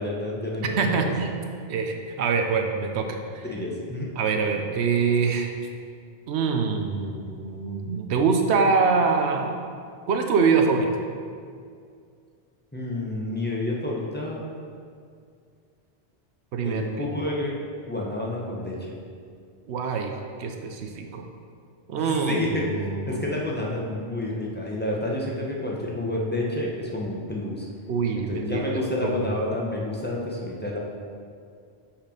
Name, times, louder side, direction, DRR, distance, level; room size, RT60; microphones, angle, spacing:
voice 1, 0.0-1.1 3.5-4.1 12.7-14.4 16.6-17.6 17.9-18.9 22.0-27.7 28.1-30.8, left 1 dB, 10° left, -3 dB, 0.8 m, -29 dB
voice 2, 0.6-1.3 1.7-3.5 4.2-5.5 6.3-9.6 10.1-10.9 16.5-17.1 19.7-20.1 20.4-21.2 21.9-23.2 27.9-28.6 29.0-29.3, right 5 dB, 85° right, 4 dB, 0.9 m, -24 dB
5.7 x 4.4 x 5.0 m, 2.2 s
omnidirectional pair, 1.1 m